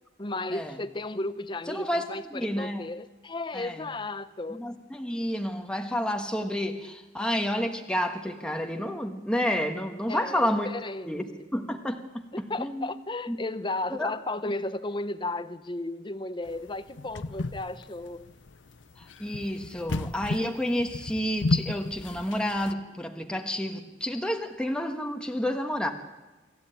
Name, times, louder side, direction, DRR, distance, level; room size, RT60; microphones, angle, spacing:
voice 1, 0.2-4.6 10.1-11.2 12.3-18.3, left 2 dB, 25° left, 0.9 m, -34 dB
voice 2, 1.7-2.0 2.3-2.8 3.5-3.9 4.5-10.7 11.0-12.9 13.3-13.4 13.9-14.1 19.0-25.9, equal, 5° left, 1.3 m, -30 dB
sound 1, 16.5-22.7, left 2 dB, 75° left, 0.7 m, -33 dB
25.5 x 14.0 x 9.1 m
head